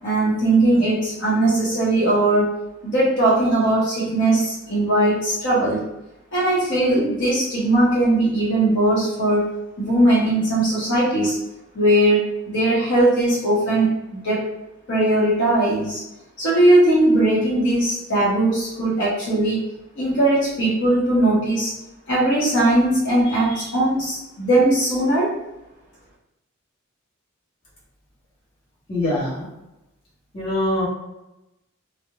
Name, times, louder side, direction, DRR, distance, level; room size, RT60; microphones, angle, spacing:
voice 1, 0.0-2.5 2.8-5.8 6.3-9.5 9.8-11.4 11.7-14.5 14.9-16.0 16.4-19.7 20.0-21.7 22.1-25.4, right 1 dB, 60° left, -7 dB, 0.8 m, -19 dB
voice 2, 28.9-29.4 30.3-30.9, left 1 dB, 25° left, -8 dB, 1.0 m, -23 dB
2.4 x 2.0 x 2.8 m, 0.93 s
head